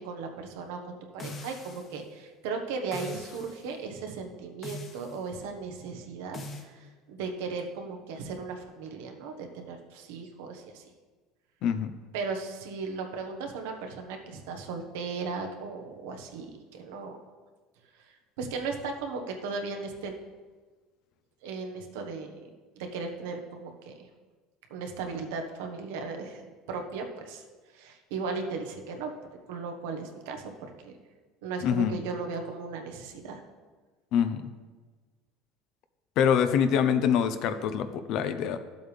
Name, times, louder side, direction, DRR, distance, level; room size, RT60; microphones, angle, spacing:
voice 1, 0.0-10.8 12.1-17.2 18.0-20.1 21.4-22.5 22.8-24.1 24.7-26.4 26.7-27.4 27.7-29.1 29.5-30.5 30.8-31.0 31.4-33.4, right 4 dB, 85° right, 3 dB, 1.3 m, -36 dB
sound 1, 1.2-2.0 2.9-3.6 4.6-5.2 6.3-6.7, left 2 dB, 35° left, 1.3 m, -41 dB
voice 2, 11.6-11.9 31.6-32.0 34.1-34.5 36.2-38.6, left 8 dB, 60° left, 10 dB, 0.7 m, -25 dB
12.0 x 7.8 x 3.5 m, 1.4 s
supercardioid pair, 115°, 0 cm